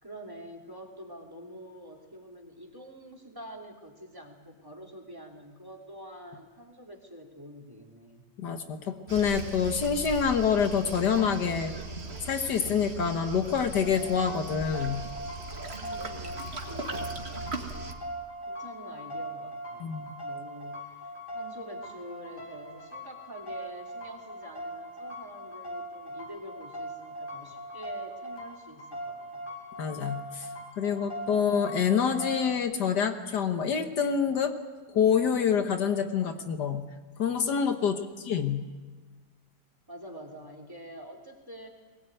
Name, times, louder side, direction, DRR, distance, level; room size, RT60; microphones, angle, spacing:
voice 1, 0.0-8.2 15.7-17.1 18.5-20.8 21.3-29.5 37.8-38.4 39.9-41.7, equal, 10° right, 2 dB, 3.2 m, -46 dB
voice 2, 8.4-11.7 12.2-15.0 19.8-20.1 29.8-30.5 30.8-34.5 34.9-36.8 37.2-38.0 38.3-38.6, left 7 dB, 75° left, 7 dB, 1.9 m, -27 dB
Waves surf, 9.1-17.9, right 2 dB, 40° right, 2.1 m, -39 dB
sound 1, 13.8-32.5, right 1 dB, 30° left, 4.8 m, -40 dB
21.5 x 19.5 x 9.2 m, 1.4 s
omnidirectional pair, 1.8 m